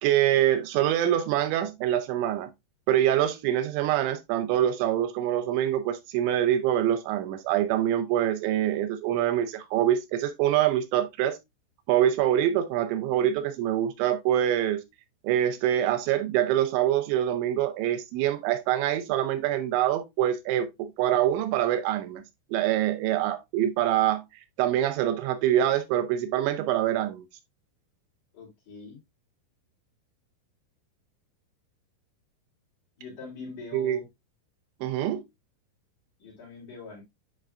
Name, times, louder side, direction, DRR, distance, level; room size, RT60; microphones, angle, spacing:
voice 1, 0.0-2.5 2.9-11.4 11.9-14.8 15.2-22.2 22.5-24.2 24.6-27.2 33.7-34.0 34.8-35.2, right 11 dB, 80° right, 2.9 m, -25 dB
voice 2, 28.3-29.0 33.0-34.1 36.2-37.0, left 3 dB, 40° left, 4.2 m, -43 dB
10.0 x 4.5 x 2.4 m
omnidirectional pair, 5.5 m